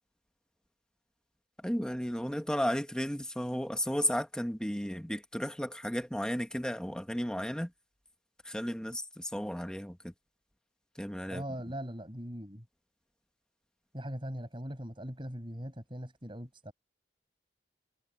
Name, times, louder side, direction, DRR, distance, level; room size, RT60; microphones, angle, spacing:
voice 1, 1.6-7.7 8.4-10.1 10.9-11.4, equal, 5° left, 1.3 m, -34 dB
voice 2, 11.3-12.6 13.9-16.7, equal, 25° right, 7.1 m, -40 dB
head